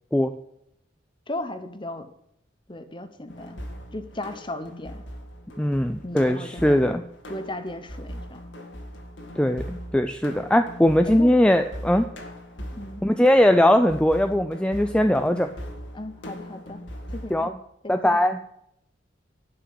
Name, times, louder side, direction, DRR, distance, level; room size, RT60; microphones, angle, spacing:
voice 1, 1.3-2.1 2.7-3.6 3.9-5.0 6.0-6.8 7.3-8.4 11.0-11.3 12.8-13.0 15.9-16.8 17.1-17.5 17.8-18.2, left 1 dB, 25° left, 10 dB, 1.0 m, -35 dB
sound 1, 3.3-17.4, equal, 75° left, 2.1 m, -40 dB
voice 2, 5.6-7.0 9.4-12.1 13.0-15.5 17.3-17.6 17.9-18.4, left 1 dB, 5° left, 7 dB, 0.4 m, -20 dB
11.5 x 6.1 x 7.7 m, 0.75 s
head